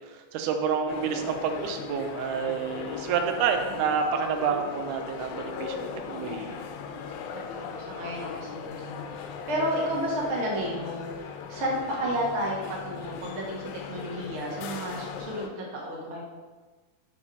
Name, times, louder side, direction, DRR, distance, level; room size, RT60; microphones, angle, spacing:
voice 1, 0.1-6.6, right 6 dB, 85° right, 5 dB, 2.1 m, -29 dB
sound 1, 0.9-15.5, left 6 dB, 90° left, 2.0 m, -38 dB
voice 2, 7.3-16.2, equal, 45° right, -3 dB, 0.9 m, -32 dB
5.3 x 4.8 x 5.3 m, 1.4 s
omnidirectional pair, 3.4 m